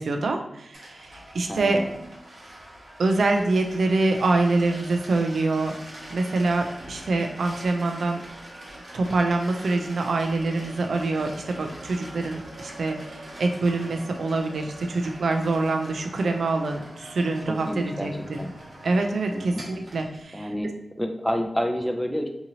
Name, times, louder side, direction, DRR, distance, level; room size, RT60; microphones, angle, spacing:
voice 1, 0.0-1.8 3.0-5.7 6.1-8.2 8.9-18.4 18.8-20.5, right 3 dB, 90° right, 4 dB, 0.3 m, -25 dB
sound 1, 0.7-20.2, right 1 dB, 65° right, 1.0 m, -43 dB
voice 2, 1.5-2.0 17.5-18.1 18.4-18.5 19.3-19.6 20.3-20.7 21.0-22.3, equal, ahead, 4 dB, 0.4 m, -29 dB
2.7 x 2.7 x 2.7 m, 0.83 s
wide cardioid pair, 115°, 0 cm